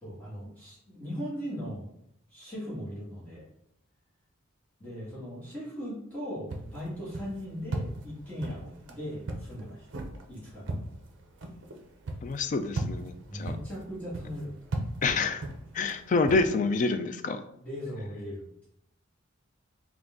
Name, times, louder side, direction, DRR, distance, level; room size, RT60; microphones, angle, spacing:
voice 1, 0.0-1.9 2.3-3.4 4.8-9.9 10.3-10.7 13.3-14.5 17.6-18.5, equal, 10° left, -9 dB, 1.4 m, -38 dB
sound 1, 6.5-16.4, right 2 dB, 60° right, 0.5 m, -38 dB
voice 2, 12.2-13.5 15.0-15.4 15.7-17.4, left 3 dB, 40° left, 9 dB, 0.3 m, -27 dB
3.8 x 2.4 x 3.5 m, 0.76 s
head